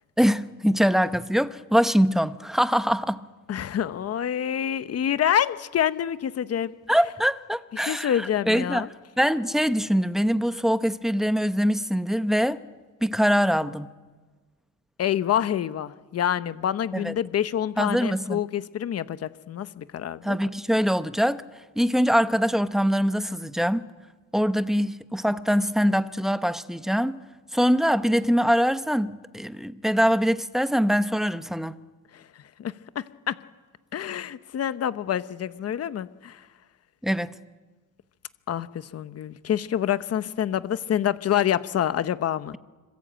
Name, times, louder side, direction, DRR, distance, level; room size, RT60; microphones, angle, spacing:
voice 1, 0.2-3.2 6.9-8.9 9.2-12.6 13.0-13.9 16.9-17.1 17.8-18.4 20.2-21.4 21.8-23.8 24.3-27.2 27.5-31.7 37.0-37.3, equal, ahead, 0.9 m, -23 dB
voice 2, 3.5-6.7 7.9-8.9 15.0-20.4 32.1-32.3 32.6-33.4 33.9-36.4 38.5-42.5, left 10 dB, 45° left, 1.0 m, -27 dB
26.5 x 25.0 x 8.9 m
cardioid pair, 145°, 34 cm